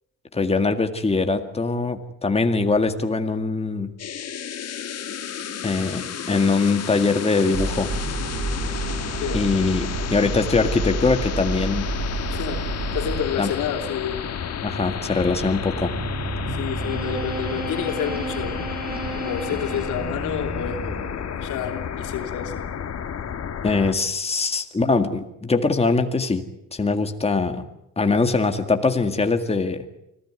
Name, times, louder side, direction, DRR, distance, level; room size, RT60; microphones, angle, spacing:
voice 1, 0.3-3.9 5.6-7.9 9.3-11.9 13.4-13.5 14.6-15.9 23.6-26.4 26.7-27.6 28.0-29.9, left 3 dB, 20° left, 6 dB, 2.0 m, -22 dB
sound 1, 4.0-23.9, left 8 dB, 55° left, 2.1 m, -32 dB
sound 2, 7.5-13.2, right 2 dB, 80° right, 7.2 m, -29 dB
voice 2, 9.2-9.5 12.3-12.6 12.9-14.2 16.6-18.6 19.1-22.6, left 8 dB, 85° left, 4 dB, 3.3 m, -29 dB
sound 3, 15.2-21.5, right 3 dB, 30° right, 5.0 m, -33 dB
25.0 x 16.0 x 9.7 m, 0.84 s
cardioid pair, 90°, 30 cm